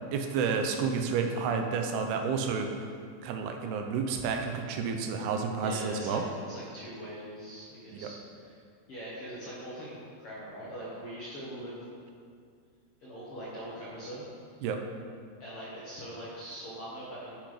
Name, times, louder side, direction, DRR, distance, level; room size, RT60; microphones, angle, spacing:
voice 1, 0.1-2.9 3.2-6.2 7.9-8.1 14.6-14.8, right 5 dB, 80° right, 4 dB, 2.7 m, -30 dB
voice 2, 5.6-8.2 8.4-8.6 8.9-11.8 13.0-14.3 15.4-17.4, equal, 55° left, -8 dB, 1.6 m, -42 dB
10.5 x 6.0 x 5.0 m, 2.2 s
omnidirectional pair, 4.6 m